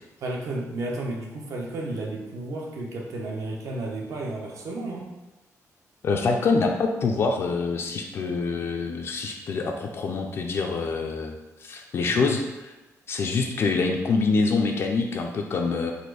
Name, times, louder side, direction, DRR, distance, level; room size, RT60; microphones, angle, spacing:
voice 1, 0.2-5.1 12.1-12.4, right 2 dB, 60° right, -1 dB, 0.9 m, -32 dB
voice 2, 6.0-12.4 13.1-15.9, left 4 dB, 45° left, 2 dB, 0.4 m, -25 dB
4.1 x 2.5 x 4.7 m, 1.0 s
wide cardioid pair, 175°, 6 cm